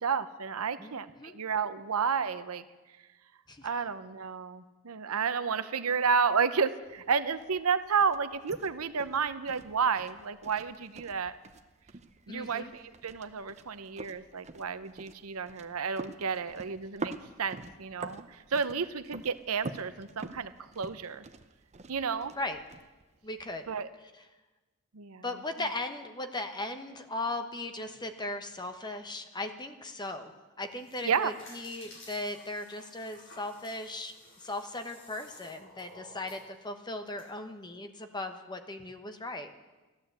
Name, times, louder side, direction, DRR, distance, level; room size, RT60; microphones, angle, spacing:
voice 1, 0.0-2.6 3.6-11.3 12.3-17.1 17.4-21.2 21.9-22.3 23.7-23.9 24.9-25.2 31.0-31.3, right 6 dB, 70° right, 12 dB, 0.8 m, -31 dB
voice 2, 0.8-1.3 3.5-3.7 12.3-12.7 22.4-22.6 23.2-23.6 25.2-30.3 30.6-34.1 34.4-39.5, left 2 dB, 20° left, 7 dB, 1.1 m, -38 dB
sound 1, 6.8-23.8, right 3 dB, 30° right, 0.7 m, -47 dB
sound 2, 30.6-37.3, left 2 dB, 60° left, 4.5 m, -54 dB
14.5 x 11.5 x 8.1 m, 1.2 s
head